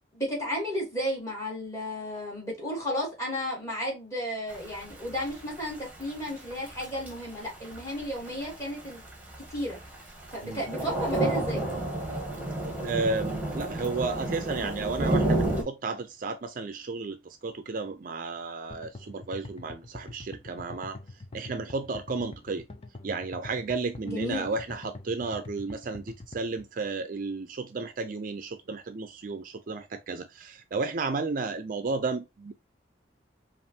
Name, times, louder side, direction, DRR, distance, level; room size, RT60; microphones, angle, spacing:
voice 1, 0.1-9.0 9.5-9.8 10.3-11.6 24.0-24.5, equal, 15° left, 2.6 m, -33 dB
Thunder / Rain, 4.5-15.6, right 2 dB, 10° right, 1.2 m, -31 dB
voice 2, 12.8-21.0 21.3-22.7 23.0-32.5, right 3 dB, 45° right, 0.4 m, -33 dB
sound 1, 18.7-26.7, left 2 dB, 30° left, 0.5 m, -44 dB
5.3 x 2.5 x 2.8 m
head